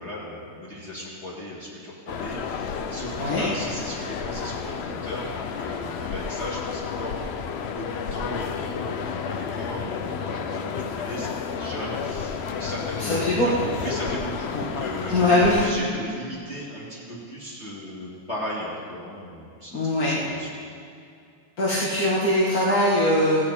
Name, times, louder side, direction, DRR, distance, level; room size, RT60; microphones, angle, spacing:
voice 1, 0.0-20.7, equal, 20° left, -9 dB, 2.4 m, -37 dB
sound 1, 2.1-15.7, left 6 dB, 60° left, 0.8 m, -31 dB
voice 2, 13.0-13.7 14.5-14.7 15.1-15.6 19.7-20.2 21.6-23.4, left 1 dB, 80° left, -7 dB, 2.1 m, -21 dB
16.0 x 10.5 x 4.3 m, 2.4 s
omnidirectional pair, 1.5 m